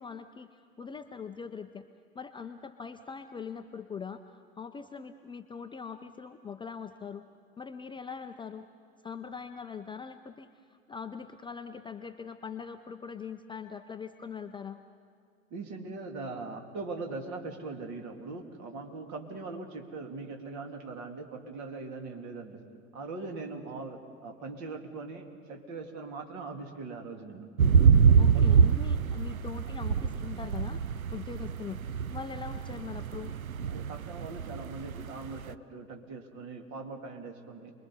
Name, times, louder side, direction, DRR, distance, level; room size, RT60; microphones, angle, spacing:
voice 1, 0.0-1.9 2.1-7.2 7.6-8.7 9.0-14.8 28.1-30.8 31.1-31.8 32.1-33.3, left 6 dB, 10° left, 8 dB, 0.5 m, -42 dB
voice 2, 15.5-22.6 22.9-27.5 28.3-28.4 29.3-29.4 33.7-37.7, right 3 dB, 45° right, 3 dB, 2.9 m, -41 dB
sound 1, 27.6-35.5, right 6 dB, 85° right, 0.6 m, -25 dB
28.5 x 22.0 x 5.6 m, 2.2 s
figure-of-eight pair, 85°, 41 cm